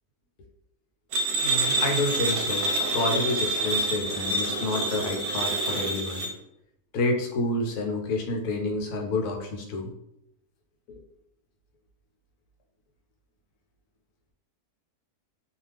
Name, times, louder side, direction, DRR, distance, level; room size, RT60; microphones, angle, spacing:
sound 1, 1.1-6.3, right 1 dB, 85° right, 1.2 m, -27 dB
voice 1, 1.4-6.3 6.9-9.9, left 2 dB, 85° left, 2 dB, 1.1 m, -29 dB
2.4 x 2.3 x 3.3 m, 0.79 s
omnidirectional pair, 1.6 m